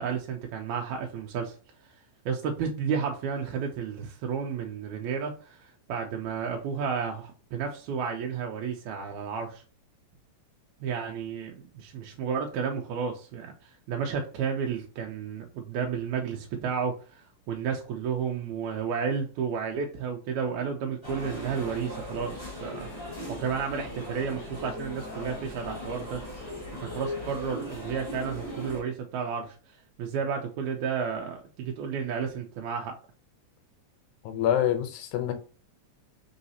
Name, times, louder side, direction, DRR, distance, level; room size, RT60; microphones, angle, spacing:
voice 1, 0.0-1.6 1.8-1.9 2.3-9.6 10.8-22.9 23.3-26.2 26.8-32.9, right 6 dB, 80° right, 1.8 m, -32 dB
sound 1, 21.0-28.8, left 1 dB, 15° left, 1.1 m, -38 dB
voice 2, 34.2-35.3, left 10 dB, 85° left, 2.0 m, -26 dB
3.9 x 3.9 x 2.7 m
omnidirectional pair, 3.5 m